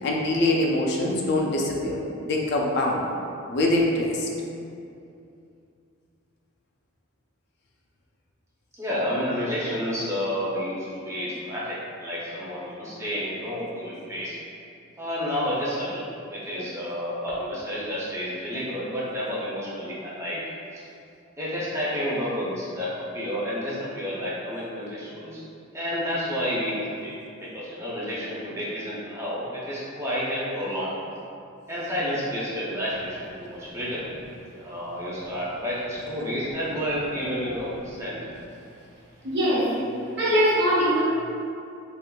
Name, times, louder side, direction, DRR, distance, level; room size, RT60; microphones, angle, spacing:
voice 1, 0.0-3.0 3.5-4.3, left 1 dB, 50° left, -1 dB, 0.4 m, -24 dB
voice 2, 8.8-14.4 15.0-16.1 16.3-20.4 20.7-20.8 21.4-25.4 25.7-26.7 27.0-27.1 27.5-31.0 31.7-34.0 34.6-38.2, equal, 15° right, -8 dB, 0.5 m, -30 dB
voice 3, 39.2-39.7 40.2-41.0, equal, 50° right, -10 dB, 1.0 m, -21 dB
3.6 x 2.4 x 2.3 m, 2.6 s
head